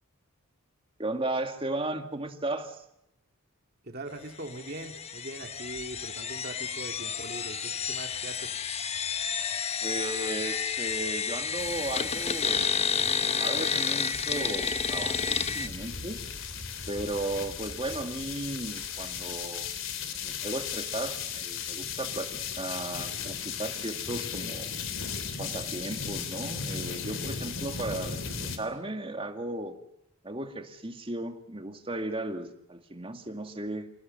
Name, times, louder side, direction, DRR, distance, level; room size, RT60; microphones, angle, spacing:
voice 1, 1.0-2.8 9.8-12.7 13.4-16.2 16.9-19.7 20.2-24.7 25.4-29.7 30.2-33.9, right 2 dB, 25° right, 6 dB, 2.1 m, -35 dB
voice 2, 3.8-8.6, right 1 dB, 45° right, 4 dB, 2.2 m, -41 dB
sound 1, 4.5-15.7, left 6 dB, 30° left, 1.0 m, -30 dB
sound 2, 11.6-28.6, left 6 dB, 60° left, 3.3 m, -37 dB
28.0 x 18.0 x 7.7 m, 0.84 s
head